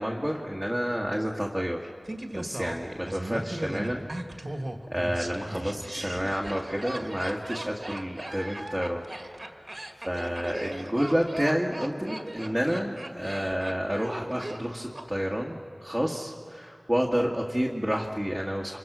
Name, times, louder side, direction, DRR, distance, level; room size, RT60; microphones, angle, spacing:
voice 1, 0.0-1.9 2.3-4.0 4.5-4.6 4.9-9.0 9.5-9.7 10.0-18.8, equal, 10° right, -2 dB, 1.9 m, -29 dB
Laughter, 2.1-15.1 15.3-15.4, right 1 dB, 45° right, 1.8 m, -38 dB
29.0 x 25.5 x 6.3 m, 2.3 s
wide cardioid pair, 60°, 0 cm